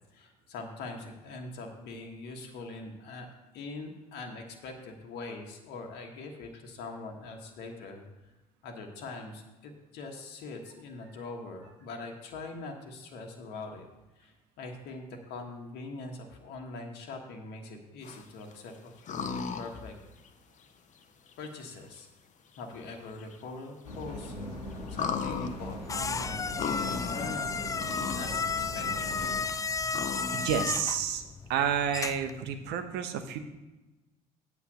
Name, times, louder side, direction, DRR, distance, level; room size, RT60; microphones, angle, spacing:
voice 1, 0.2-3.3 3.5-8.0 8.6-13.9 14.2-14.3 14.6-19.9 21.4-22.1 22.6-24.3 24.9-28.4 28.7-29.1, left 3 dB, 55° left, 2 dB, 1.3 m, -42 dB
sound 1, 18.0-18.5 19.1-19.8 20.2-20.3 21.3-21.4 22.6-22.7 22.9-23.0 23.2-23.3 23.9-24.3 24.9-27.4 27.7-28.3 28.6-30.5, left 6 dB, 40° left, 0.9 m, -35 dB
sound 2, 23.8-29.4, left 1 dB, 85° left, 1.2 m, -40 dB
sound 3, 25.2-32.4, left 5 dB, 15° left, 0.4 m, -34 dB
voice 2, 30.3-31.2 31.5-33.4, right 8 dB, 60° right, 8 dB, 0.9 m, -30 dB
8.3 x 5.9 x 6.5 m, 1.1 s
figure-of-eight pair, 55°, 20 cm